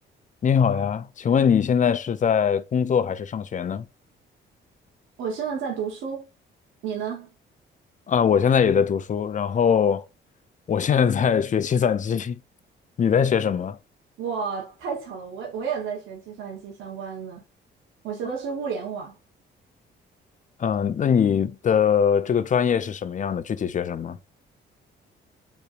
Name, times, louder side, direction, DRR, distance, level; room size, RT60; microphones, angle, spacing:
voice 1, 0.4-3.9 8.1-10.0 10.7-12.4 13.0-13.8 20.6-24.2, left 7 dB, 40° left, 0.5 m, -22 dB
voice 2, 5.2-6.3 6.8-7.3 14.2-17.4 18.0-19.2, right 6 dB, 80° right, 1.1 m, -31 dB
6.8 x 3.1 x 2.4 m
cardioid pair, 90°, 20 cm